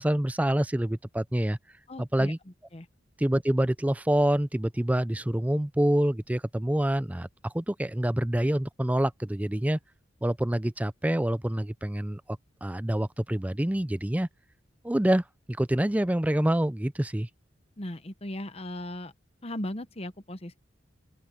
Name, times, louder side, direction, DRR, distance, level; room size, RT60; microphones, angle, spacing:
voice 1, 0.0-1.6 2.0-2.4 3.2-9.8 10.2-14.3 14.8-17.3, right 1 dB, 10° right, 0.4 m, -26 dB
voice 2, 1.9-2.3 2.7-2.9 17.8-19.1 19.4-20.6, left 1 dB, 30° left, 1.0 m, -37 dB
open air
head